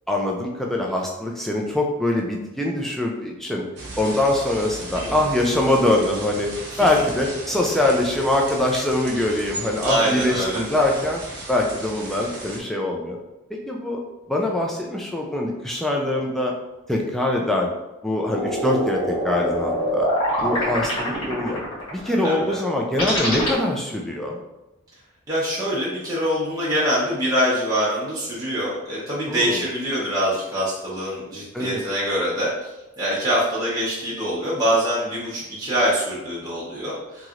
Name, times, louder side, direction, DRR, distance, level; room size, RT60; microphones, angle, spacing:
voice 1, 0.1-3.6 4.0-6.5 6.8-11.2 11.5-13.2 13.7-14.0 14.3-16.5 16.9-17.7 18.0-20.1 20.4-21.6 21.9-24.4 29.3-29.6 31.5-31.8, left 1 dB, ahead, -1 dB, 0.3 m, -23 dB
sound 1, 3.8-12.6, right 2 dB, 50° right, 0.7 m, -36 dB
voice 2, 9.8-10.6 22.2-22.6 25.3-32.7 33.0-37.3, equal, 15° right, -9 dB, 0.7 m, -24 dB
sound 2, 18.3-23.5, equal, 80° left, 1.1 m, -24 dB
3.0 x 2.8 x 2.4 m, 1.0 s
head